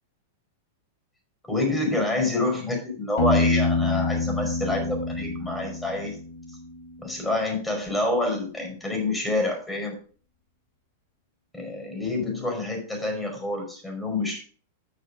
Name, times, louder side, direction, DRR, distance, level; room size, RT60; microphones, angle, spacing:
voice 1, 1.5-6.1 7.0-10.0 11.5-14.4, left 2 dB, 5° left, 0 dB, 5.3 m, -27 dB
Piano, 3.2-6.9, left 3 dB, 55° left, 2.6 m, -26 dB
10.0 x 6.7 x 5.0 m, 0.41 s
figure-of-eight pair, 95°, 0 cm